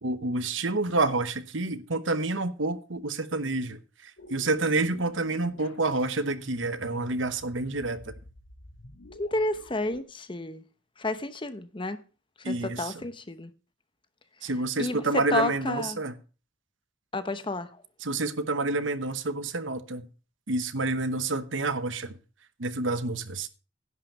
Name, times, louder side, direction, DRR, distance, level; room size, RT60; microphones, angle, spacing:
voice 1, 0.0-8.1 12.4-12.9 14.4-16.1 18.0-20.1 20.5-22.2 22.6-23.5, right 2 dB, 70° right, 1.0 m, -28 dB
sound 1, 4.2-10.0, left 1 dB, 80° left, 2.3 m, -49 dB
voice 2, 9.2-10.6 11.0-12.0 12.4-13.5 14.4-14.5 14.8-16.0 17.1-17.7, left 2 dB, 25° left, 0.9 m, -31 dB
11.0 x 5.8 x 7.4 m
head